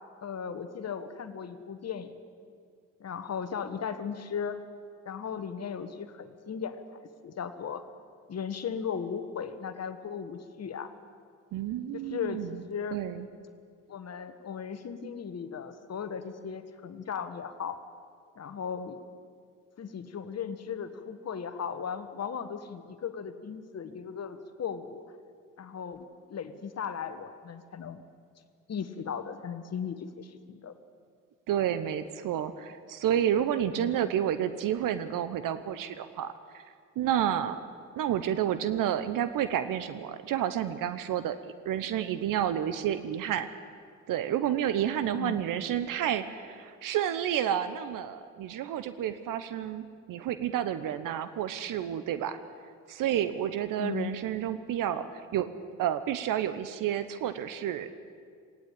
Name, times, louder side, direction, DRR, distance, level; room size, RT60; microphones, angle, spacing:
voice 1, 0.2-2.1 3.0-4.6 5.0-7.8 8.3-10.9 11.9-12.4 12.7-13.0 13.9-17.8 18.4-19.0 19.8-25.0 25.6-26.0 26.3-28.0 28.7-30.7 33.7-33.9 45.1-45.4 53.8-54.1, left 7 dB, 40° left, 9 dB, 1.6 m, -37 dB
voice 2, 11.5-12.6 12.9-13.3 31.5-36.6 37.0-37.6 38.0-43.5 44.1-52.4 52.9-55.5 55.8-57.9, right 10 dB, 55° right, 13 dB, 1.1 m, -30 dB
19.0 x 17.0 x 9.0 m, 2.2 s
hypercardioid pair, 55°, 38 cm